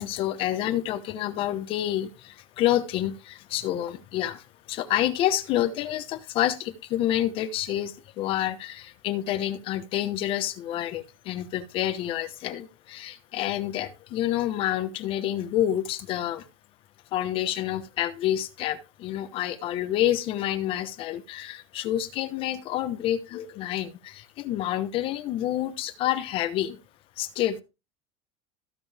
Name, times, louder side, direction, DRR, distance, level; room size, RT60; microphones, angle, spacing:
voice 1, 0.0-16.4 17.1-26.8 27.2-27.6, left 12 dB, 35° left, 0.9 m, -28 dB
15.0 x 5.4 x 3.4 m
supercardioid pair, 170°, 15 cm